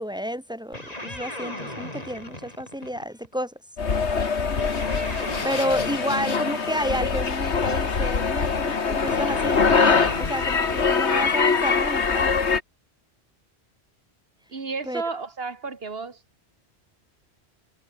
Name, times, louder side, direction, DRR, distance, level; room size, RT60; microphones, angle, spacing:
voice 1, 0.0-3.5 5.2-12.3 14.9-15.0, equal, 5° right, 5.7 m, -30 dB
sound 1, 0.7-3.3 4.6-7.1 9.1-11.6, left 1 dB, 35° left, 5.8 m, -37 dB
sound 2, 3.8-12.6, left 5 dB, 85° left, 2.0 m, -23 dB
voice 2, 14.5-16.2, right 4 dB, 65° right, 2.0 m, -32 dB
omnidirectional pair, 1.1 m